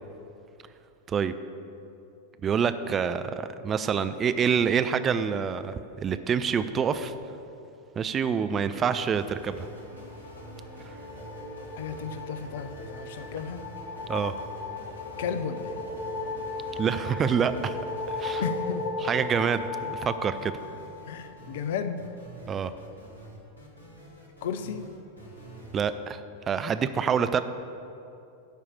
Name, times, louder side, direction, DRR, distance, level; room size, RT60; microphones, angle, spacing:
voice 1, 2.4-5.7 6.0-7.1 8.0-9.7 10.8-10.9 14.1-14.3 16.8-17.8 18.1-18.4 19.0-20.5 22.5-22.7 25.7-27.4, right 7 dB, 25° right, 11 dB, 0.4 m, -27 dB
sound 1, 8.8-25.9, right 1 dB, 90° right, 1.7 m, -46 dB
sound 2, 9.8-21.2, left 3 dB, 40° left, 1.4 m, -36 dB
voice 2, 11.8-13.6 15.2-15.7 18.4-18.9 21.1-22.0 24.4-24.8, left 7 dB, 55° left, 10 dB, 0.6 m, -33 dB
12.0 x 4.9 x 7.2 m, 2.7 s
figure-of-eight pair, 90°, 0 cm